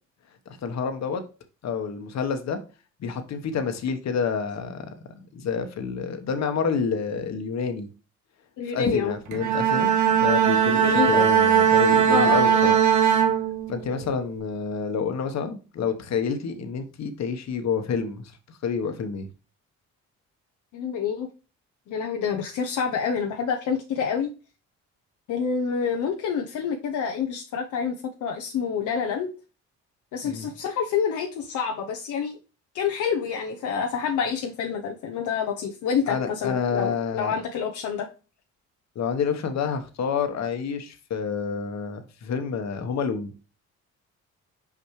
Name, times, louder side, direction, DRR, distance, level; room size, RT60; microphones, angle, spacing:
voice 1, 0.6-1.2 1.6-2.6 3.0-7.9 8.7-12.7 13.7-18.3 18.6-19.3 30.2-30.5 36.1-37.4 38.9-43.3, left 6 dB, 60° left, 1.2 m, -28 dB
voice 2, 8.6-9.1 10.8-11.3 12.1-12.6 20.7-21.3 21.9-24.3 25.3-29.3 30.1-32.4 32.7-38.1, left 6 dB, 75° left, 0.8 m, -27 dB
Bowed string instrument, 9.3-14.0, right 8 dB, 70° right, 1.3 m, -20 dB
5.8 x 5.1 x 3.1 m
cardioid pair, 90°, 30 cm